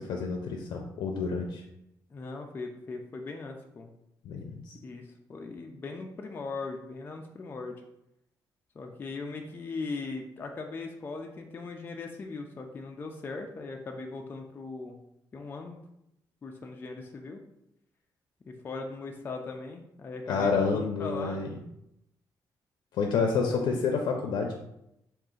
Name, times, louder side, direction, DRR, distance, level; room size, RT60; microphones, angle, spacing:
voice 1, 0.0-1.6 4.2-4.8 20.3-21.6 22.9-24.6, left 5 dB, 90° left, 2 dB, 0.4 m, -29 dB
voice 2, 2.1-3.9 4.8-7.7 8.8-15.0 15.3-15.8 16.4-17.4 18.5-21.5 23.5-23.8, left 3 dB, 25° left, 2 dB, 0.3 m, -39 dB
3.8 x 2.4 x 3.7 m, 0.82 s
wide cardioid pair, 160°, 8 cm